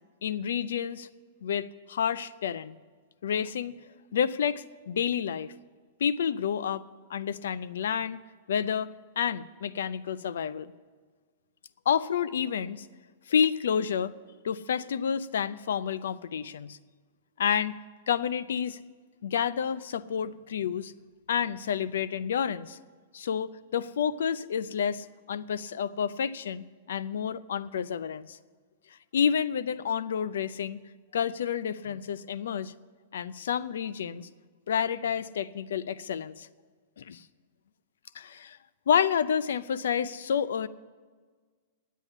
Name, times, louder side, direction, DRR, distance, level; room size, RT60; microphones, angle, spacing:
voice 1, 0.2-1.1 1.4-2.7 3.2-3.8 4.1-5.5 6.0-6.8 7.1-8.2 8.5-10.7 11.9-12.9 13.3-14.1 14.4-16.8 17.4-17.7 18.1-18.8 19.2-20.9 21.3-22.8 23.1-28.4 29.1-30.8 31.1-32.7 33.1-34.3 34.7-36.5 37.0-37.2 38.1-38.6 38.9-40.7, left 8 dB, 90° left, 17 dB, 0.5 m, -29 dB
10.0 x 8.3 x 9.8 m, 1.5 s
supercardioid pair, 170°, 0 cm